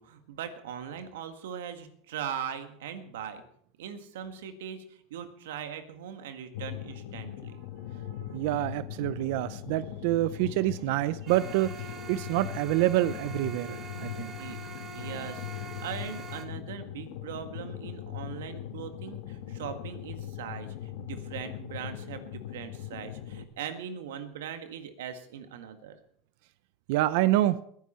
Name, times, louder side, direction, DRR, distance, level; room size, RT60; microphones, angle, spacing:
voice 1, 0.0-3.4 3.8-7.6 14.4-14.6 14.9-15.5 15.8-26.0, right 8 dB, 90° right, 8 dB, 1.8 m, -40 dB
sound 1, 6.5-23.5, left 11 dB, 75° left, 1.4 m, -40 dB
voice 2, 8.3-11.7 12.1-14.3 26.9-27.6, right 15 dB, 70° right, 16 dB, 0.6 m, -27 dB
sound 2, 11.3-16.5, right 6 dB, 35° right, 2.6 m, -44 dB
21.5 x 10.5 x 4.4 m, 0.65 s
supercardioid pair, 125°, 0 cm